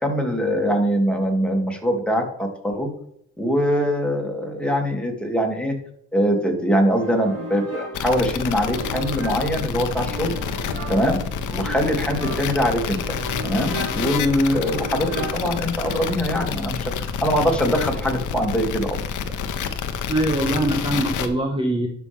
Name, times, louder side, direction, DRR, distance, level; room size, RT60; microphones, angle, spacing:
voice 1, 0.0-2.9 3.4-5.7 6.1-10.4 10.9-11.2 11.5-13.0 13.4-19.0, equal, 5° left, 1 dB, 2.4 m, -22 dB
sound 1, 6.9-16.4, right 2 dB, 55° right, 3.5 m, -36 dB
sound 2, 7.9-21.3, left 7 dB, 80° left, 1.0 m, -28 dB
voice 2, 20.1-21.9, right 1 dB, 15° right, 3 dB, 1.2 m, -22 dB
12.0 x 5.8 x 3.5 m, 0.70 s
cardioid pair, 90°, 30 cm